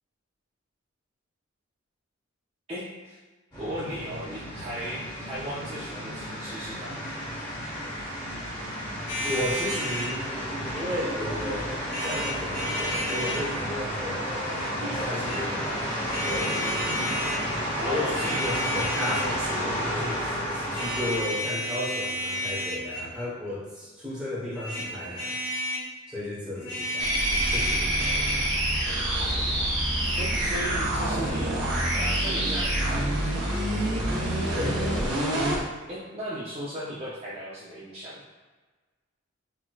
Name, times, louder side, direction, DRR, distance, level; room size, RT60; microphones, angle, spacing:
voice 1, 2.7-3.2 3.6-7.1 17.8-18.4 30.2-31.6 31.9-33.7 35.9-38.2, equal, 30° right, -9 dB, 0.4 m, -36 dB
sound 1, 3.5-21.2, equal, 20° left, 1.1 m, -32 dB
sound 2, 9.1-10.1 11.8-13.5 15.0-15.4 16.1-17.4 18.0-19.4 20.7-23.2 24.5-25.9 26.6-28.3, equal, 60° left, 0.6 m, -32 dB
voice 2, 9.2-10.3 10.7-14.5 14.8-15.8 16.2-17.0 17.8-25.4 26.1-28.4 34.5-35.2, left 1 dB, 5° right, -9 dB, 0.9 m, -34 dB
sound 3, 27.0-35.6, right 1 dB, 60° right, 0.7 m, -26 dB
4.4 x 2.1 x 2.3 m, 1.3 s
head